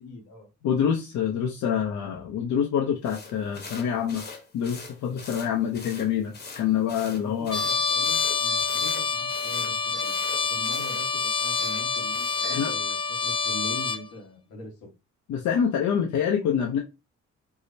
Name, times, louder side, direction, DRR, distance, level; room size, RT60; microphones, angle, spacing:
voice 1, 0.0-0.5 5.4-5.7 7.2-10.2 10.5-14.9, left 2 dB, 90° left, 1.3 m, -42 dB
voice 2, 0.6-4.2 4.5-7.6 12.4-12.7 15.3-16.8, left 8 dB, 70° left, 0.7 m, -26 dB
sound 1, 3.0-12.6, left 4 dB, 35° left, 1.0 m, -44 dB
Trumpet, 7.5-14.0, left 5 dB, 15° left, 0.4 m, -27 dB
4.8 x 2.0 x 2.6 m
cardioid pair, 90°, 30 cm